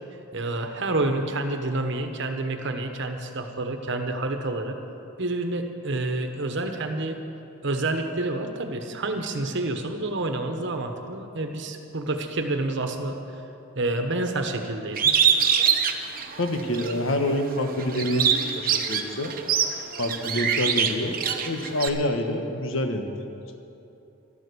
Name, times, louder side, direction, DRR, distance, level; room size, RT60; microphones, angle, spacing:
voice 1, 0.3-4.8 5.2-7.2 7.6-13.2 13.8-15.1, right 2 dB, 65° right, 5 dB, 1.2 m, -28 dB
Bird, 15.0-16.9 17.4-21.9, right 7 dB, 45° right, 0.9 m, -23 dB
voice 2, 16.4-19.3 20.0-23.1, left 1 dB, 85° left, 5 dB, 1.2 m, -27 dB
12.5 x 12.0 x 6.9 m, 2.8 s
head